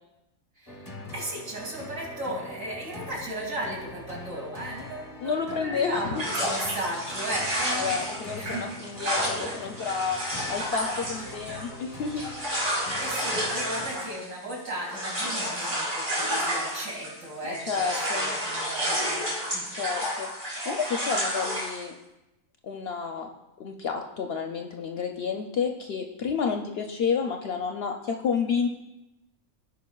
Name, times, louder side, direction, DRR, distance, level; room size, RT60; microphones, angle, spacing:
voice 1, 0.6-8.7 11.2-11.4 12.6-12.7 13.0-19.2 19.5-19.7, right 1 dB, 70° right, -4 dB, 2.6 m, -36 dB
sound 1, 0.7-14.4, left 1 dB, 20° left, 0.5 m, -43 dB
voice 2, 5.2-6.2 7.8-10.2 10.5-12.3 17.4-18.4 19.7-20.3 20.7-21.9 22.6-23.3 23.6-28.7, left 6 dB, 65° left, 4 dB, 0.6 m, -30 dB
sound 2, 6.2-17.3 17.5-21.8, equal, 50° right, 3.2 m, -31 dB
15.5 x 5.1 x 2.3 m, 0.95 s
omnidirectional pair, 1.4 m